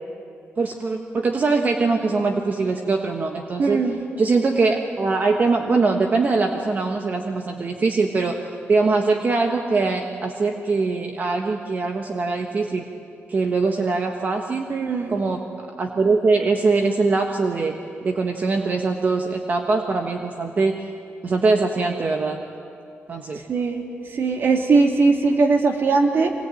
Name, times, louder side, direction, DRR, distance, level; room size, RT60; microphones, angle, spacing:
voice 1, 0.6-3.8 4.2-8.4 8.7-12.9 13.3-14.7 15.1-15.4 15.8-20.9 21.2-22.4 23.1-23.4, right 3 dB, 40° right, 3 dB, 1.4 m, -22 dB
voice 2, 3.6-4.0 14.7-15.2 23.5-23.8 24.1-26.3, right 4 dB, 55° right, 2 dB, 2.8 m, -19 dB
24.0 x 20.0 x 9.1 m, 2.5 s
cardioid pair, 120°, 4 cm